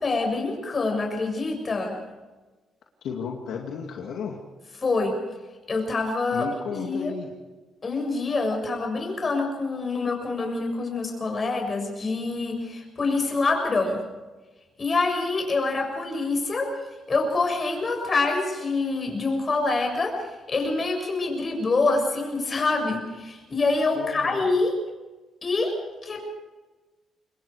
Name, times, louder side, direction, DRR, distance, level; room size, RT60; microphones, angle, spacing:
voice 1, 0.0-2.0 4.8-5.2 5.7-6.5 6.7-7.1 7.8-14.0 14.8-16.7 17.1-24.7 25.4-25.7 26.0-26.2, left 3 dB, 35° left, 3 dB, 7.1 m, -26 dB
voice 2, 3.0-4.4 6.3-7.3 23.9-24.5, left 6 dB, 75° left, 0 dB, 2.4 m, -33 dB
26.5 x 22.0 x 5.0 m, 1.2 s
cardioid pair, 90°, 0 cm